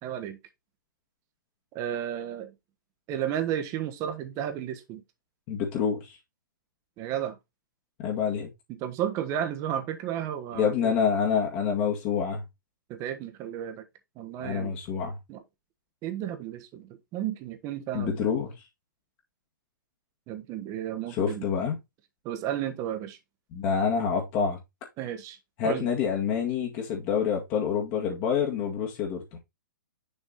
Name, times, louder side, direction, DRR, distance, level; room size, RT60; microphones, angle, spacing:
voice 1, 0.0-0.4 1.7-2.5 3.1-5.0 7.0-7.3 8.7-10.9 12.9-13.8 14.2-14.7 15.3-15.4 16.0-18.3 20.3-21.5 22.2-23.2 25.0-25.4 25.6-25.9, right 10 dB, 30° right, 1.2 m, -33 dB
voice 2, 5.5-6.1 8.0-8.5 10.6-12.4 14.4-15.2 17.9-18.5 21.1-21.8 23.5-24.6 25.6-29.4, left 7 dB, 35° left, 1.9 m, -27 dB
6.6 x 4.6 x 4.0 m
hypercardioid pair, 125°, 10 cm